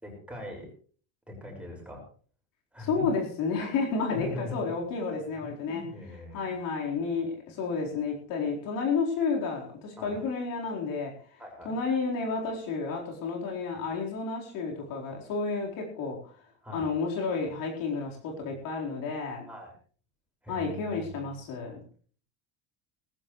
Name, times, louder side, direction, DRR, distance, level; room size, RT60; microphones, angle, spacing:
voice 1, 0.0-0.7 1.3-2.0 2.7-3.1 4.1-4.6 5.0-5.1 5.7-6.5 10.0-10.2 11.4-11.7 16.6-16.9 19.5-19.7 20.4-21.3, equal, 5° right, 0 dB, 5.8 m, -41 dB
voice 2, 2.8-5.8 6.3-11.1 11.6-16.3 16.7-19.5 20.5-21.8, left 4 dB, 65° left, 0 dB, 4.5 m, -31 dB
18.5 x 15.0 x 3.3 m, 0.43 s
cardioid pair, 140°, 37 cm